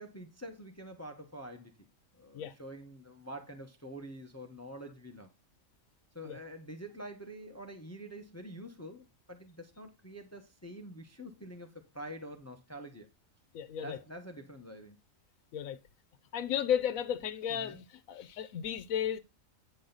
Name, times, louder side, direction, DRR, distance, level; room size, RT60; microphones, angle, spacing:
voice 1, 0.0-1.9 2.1-5.3 6.1-13.1 13.8-15.0 17.5-17.8, right 1 dB, 15° left, 1.0 m, -46 dB
voice 2, 13.5-14.0 15.5-15.8 16.3-19.2, left 9 dB, 90° left, 1.1 m, -34 dB
9.2 x 6.3 x 3.9 m
omnidirectional pair, 1.4 m